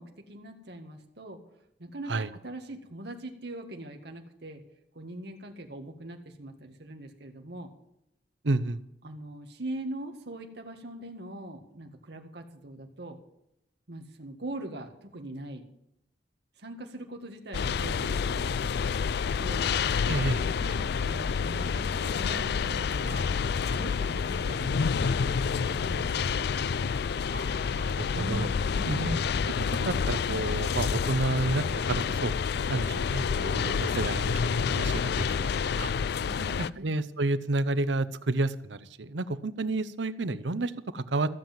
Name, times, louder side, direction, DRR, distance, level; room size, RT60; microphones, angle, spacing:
voice 1, 0.0-1.4 1.8-4.6 4.9-7.7 9.0-13.2 13.9-15.7 16.6-18.6 19.3-19.8 20.2-23.3 23.6-26.5 28.1-29.1 36.2-36.9, right 1 dB, 65° right, 3 dB, 1.8 m, -41 dB
voice 2, 8.4-8.8 20.1-20.4 27.3-28.5 28.9-29.2 29.8-31.6 31.9-32.3 32.7-35.3 35.8-35.9 36.8-41.3, right 2 dB, 85° right, 15 dB, 0.8 m, -30 dB
sound 1, 17.5-36.7, left 6 dB, 65° left, 0.4 m, -28 dB
14.5 x 7.6 x 7.3 m, 0.79 s
head